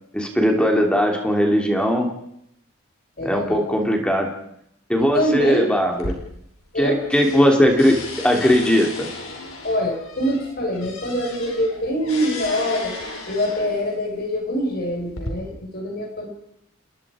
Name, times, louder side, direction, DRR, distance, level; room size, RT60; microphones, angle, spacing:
voice 1, 0.1-2.1 3.2-4.3 4.9-6.2 6.8-9.1, equal, 5° left, 2 dB, 2.8 m, -19 dB
voice 2, 3.2-3.7 5.0-5.7 6.7-7.0 9.6-12.9 13.3-16.3, equal, 45° left, 2 dB, 5.3 m, -24 dB
sound 1, 5.9-6.8 7.1-13.9 14.7-15.3, left 2 dB, 65° left, 4.9 m, -35 dB
30.0 x 21.0 x 5.0 m, 0.76 s
head